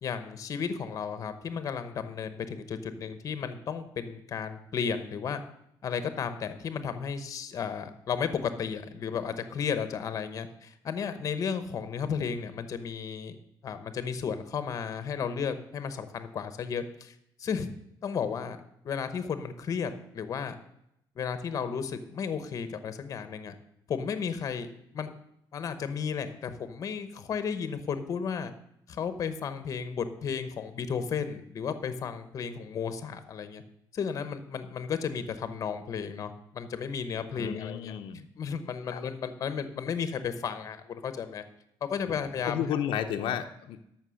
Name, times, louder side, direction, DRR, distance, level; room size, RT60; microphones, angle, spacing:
voice 1, 0.0-5.4 5.8-13.4 13.6-17.7 18.0-18.6 18.8-20.5 21.2-23.5 23.9-25.1 25.5-28.5 28.9-33.6 33.9-37.9 38.4-41.4 41.8-42.6, left 6 dB, 40° left, 10 dB, 0.9 m, -33 dB
voice 2, 37.3-38.3 38.9-39.0 42.1-43.8, left 9 dB, 75° left, 5 dB, 0.7 m, -33 dB
13.0 x 6.0 x 6.3 m, 0.78 s
cardioid pair, 165°, 9 cm